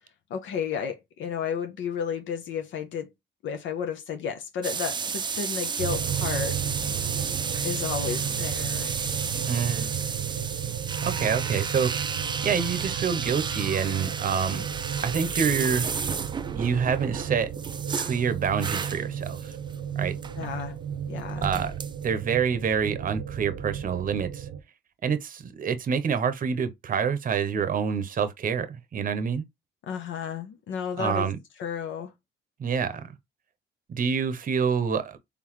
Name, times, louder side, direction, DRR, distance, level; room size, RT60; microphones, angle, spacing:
voice 1, 0.3-3.1 3.4-6.6 7.6-8.9 20.4-20.8 21.1-21.5 29.9-31.3 31.6-32.1, left 7 dB, 75° left, 0.7 m, -32 dB
sound 1, 4.6-19.8 20.1-20.6 21.2-22.1, right 5 dB, 25° right, 0.3 m, -32 dB
sound 2, 5.8-24.6, right 9 dB, 85° right, 0.6 m, -34 dB
voice 2, 9.5-9.9 11.0-12.1 12.4-14.6 15.0-15.9 16.5-17.5 18.0-19.6 19.9-20.2 21.4-21.7 22.0-24.5 25.0-29.4 31.0-31.4 32.6-33.1 33.9-35.2, right 6 dB, 45° right, 0.7 m, -27 dB
3.9 x 3.4 x 3.0 m
cardioid pair, 90°, 20 cm